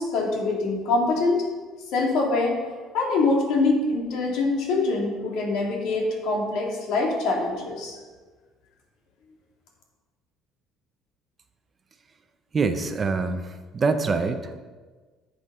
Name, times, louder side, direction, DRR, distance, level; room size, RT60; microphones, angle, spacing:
voice 1, 0.0-1.4 1.9-2.6 2.9-8.0, left 3 dB, 70° left, 0 dB, 2.5 m, -24 dB
voice 2, 12.5-13.4 13.7-14.6, right 4 dB, 25° right, 8 dB, 0.6 m, -24 dB
10.5 x 6.4 x 5.4 m, 1.4 s
cardioid pair, 145°, 0 cm